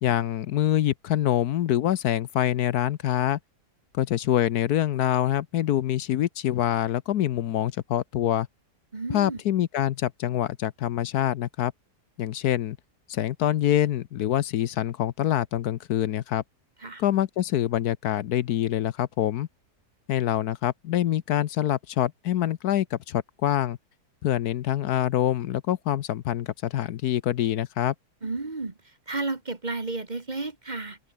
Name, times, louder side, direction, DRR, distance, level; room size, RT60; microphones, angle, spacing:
voice 1, 0.0-3.4 3.9-8.5 9.1-11.7 12.2-12.8 13.1-16.4 17.0-19.5 20.1-23.8 24.2-27.9, left 12 dB, 70° left, 1.2 m, -25 dB
voice 2, 8.9-9.4 16.8-17.0 28.2-31.0, right 3 dB, 30° right, 1.6 m, -32 dB
open air
omnidirectional pair, 1.7 m